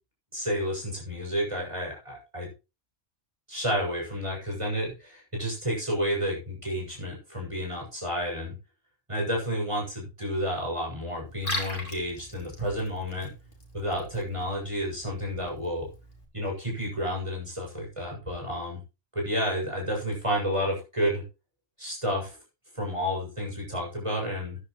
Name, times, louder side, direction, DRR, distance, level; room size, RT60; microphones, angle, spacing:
voice 1, 0.3-2.5 3.5-8.6 9.1-13.3 13.7-15.9 16.3-18.8 19.1-21.2 21.8-22.4 22.7-24.6, equal, 25° right, -1 dB, 7.6 m, -30 dB
Liquid, 11.2-16.2, left 1 dB, 45° left, 3.6 m, -40 dB
14.5 x 11.5 x 3.2 m, 0.30 s
omnidirectional pair, 1.2 m